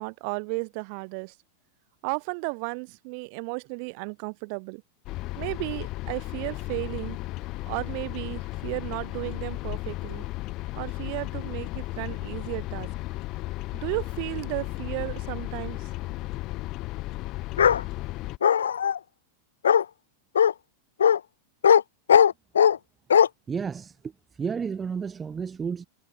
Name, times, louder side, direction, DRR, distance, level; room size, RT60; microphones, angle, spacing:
voice 1, 0.0-1.3 2.0-4.8 5.4-7.2 7.7-10.2 10.7-12.9 13.7-15.9, right 40 dB or more, 45° right, 4.6 m, -34 dB
sound 1, 5.0-18.4, left 19 dB, 40° left, 6.5 m, -34 dB
Bark, 17.6-17.8 18.4-19.0 19.6-19.8 20.4-20.5 21.0-21.2 21.6-21.8 22.1-22.8 23.1-23.3, left 8 dB, 65° left, 0.9 m, -18 dB
voice 2, 23.5-24.1 24.4-25.9, right 6 dB, 20° right, 4.9 m, -31 dB
figure-of-eight pair, 90°, 0 cm